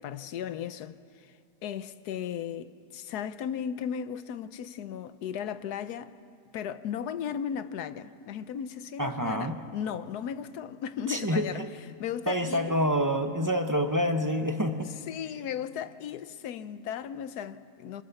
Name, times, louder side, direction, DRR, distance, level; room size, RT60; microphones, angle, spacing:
voice 1, 0.0-1.3 1.6-6.1 6.5-12.7 14.8-18.0, left 8 dB, 85° left, 1.3 m, -36 dB
voice 2, 9.0-9.5 11.1-11.5 12.3-14.9, equal, 15° right, 0.7 m, -27 dB
23.0 x 21.5 x 7.0 m
omnidirectional pair, 1.6 m